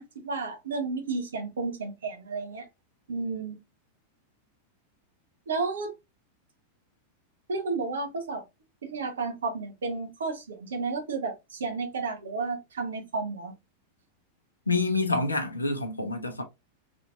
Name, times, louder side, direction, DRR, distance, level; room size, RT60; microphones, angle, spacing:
voice 1, 0.0-2.6 3.1-3.6 5.5-5.9 7.5-8.4 8.8-13.5, right 4 dB, 65° right, 0.8 m, -32 dB
voice 2, 14.7-16.4, left 3 dB, 80° left, 0.6 m, -27 dB
3.4 x 2.9 x 2.3 m
figure-of-eight pair, 90°, 0 cm